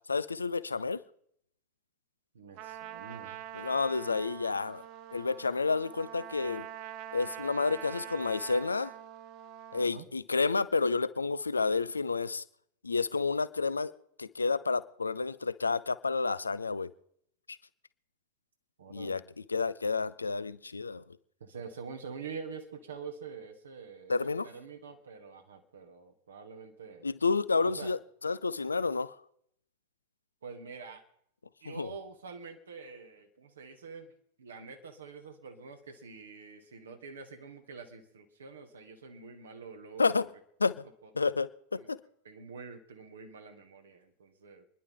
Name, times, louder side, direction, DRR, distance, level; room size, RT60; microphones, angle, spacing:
voice 1, 0.1-1.0 3.5-4.8 5.1-6.7 7.1-8.9 9.7-12.4 12.8-13.9 14.2-16.9 17.5-17.6 18.9-19.2 19.5-21.0 24.1-24.5 27.0-29.2 31.7-31.9 40.0-40.3 40.6-40.9 41.2-42.0, left 4 dB, 75° left, 17 dB, 0.5 m, -30 dB
voice 2, 2.3-3.4 9.7-10.1 18.8-19.2 21.4-27.1 27.6-27.9 30.4-31.0 31.6-34.1 34.4-40.3 41.0-41.1 41.8-41.9 42.2-44.6, right 5 dB, 65° right, 5 dB, 1.8 m, -46 dB
Trumpet, 2.6-9.9, right 12 dB, 40° right, 0.8 m, -44 dB
27.5 x 11.0 x 3.7 m, 0.71 s
figure-of-eight pair, 90°, 0 cm